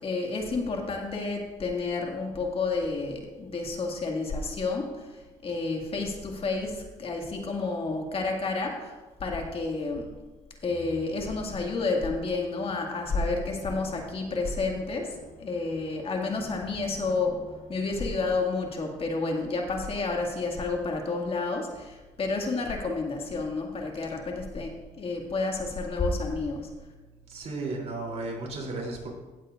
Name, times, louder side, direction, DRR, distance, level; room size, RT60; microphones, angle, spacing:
voice 1, 0.0-10.1 10.6-17.4 17.7-26.7, left 3 dB, 45° left, 1 dB, 2.1 m, -30 dB
Musical instrument, 10.7-19.2, left 3 dB, 65° left, 1.8 m, -50 dB
voice 2, 27.3-29.1, right 2 dB, 50° right, -1 dB, 3.2 m, -34 dB
16.5 x 8.1 x 2.5 m, 1.2 s
cardioid pair, 85°, 14 cm